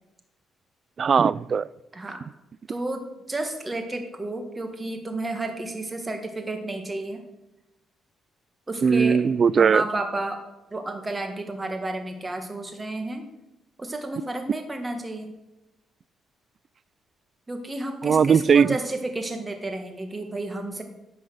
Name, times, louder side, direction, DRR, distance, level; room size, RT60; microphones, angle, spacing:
voice 1, 1.0-1.7 8.8-9.8 18.0-18.7, right 6 dB, 45° right, 0.3 m, -19 dB
voice 2, 2.7-7.2 8.7-9.2 9.6-10.4 10.7-13.3 13.8-15.3 17.5-20.8, right 2 dB, 20° right, 1.9 m, -31 dB
11.0 x 5.6 x 8.0 m
cardioid pair, 90°, 0 cm